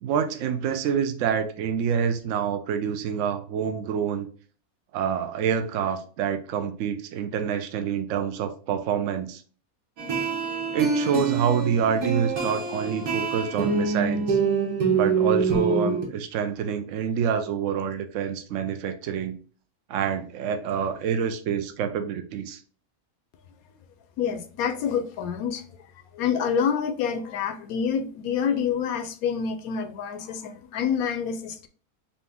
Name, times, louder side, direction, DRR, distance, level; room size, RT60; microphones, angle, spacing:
voice 1, 0.0-4.3 4.9-9.4 10.7-14.4 14.9-19.3 19.9-22.6, right 7 dB, 65° right, 0.8 m, -27 dB
sound 1, 10.0-16.1, right 5 dB, 90° right, 1.6 m, -25 dB
voice 2, 24.2-25.6 26.1-31.7, left 7 dB, 75° left, 1.0 m, -27 dB
4.0 x 2.9 x 3.5 m
omnidirectional pair, 1.6 m